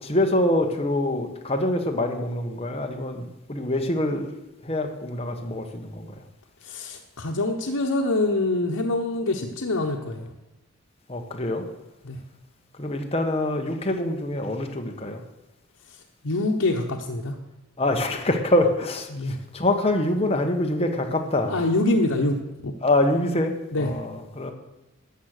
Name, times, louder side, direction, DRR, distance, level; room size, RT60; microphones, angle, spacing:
voice 1, 0.0-4.3 4.6-6.1 11.1-11.6 12.8-15.2 17.8-21.6 22.8-24.5, left 1 dB, 25° left, 4 dB, 1.1 m, -25 dB
voice 2, 6.6-10.3 12.0-12.2 15.9-16.0 16.2-17.4 19.1-19.4 21.5-22.7 23.7-23.9, left 2 dB, 80° left, -1 dB, 1.1 m, -25 dB
12.5 x 7.5 x 6.6 m, 1.0 s
head